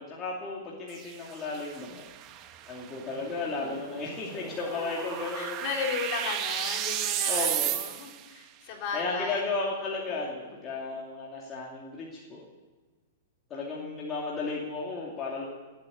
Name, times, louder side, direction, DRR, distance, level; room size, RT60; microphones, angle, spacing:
voice 1, 0.0-2.0 2.7-5.6 7.3-7.7 8.9-12.4 13.5-15.4, left 3 dB, 25° left, -4 dB, 2.6 m, -34 dB
sound 1, 0.9-8.3, right 11 dB, 30° right, 1.0 m, -34 dB
voice 2, 4.6-9.5, left 5 dB, 40° left, 1 dB, 3.7 m, -36 dB
18.5 x 8.9 x 8.4 m, 1.3 s
hypercardioid pair, 150°, 0 cm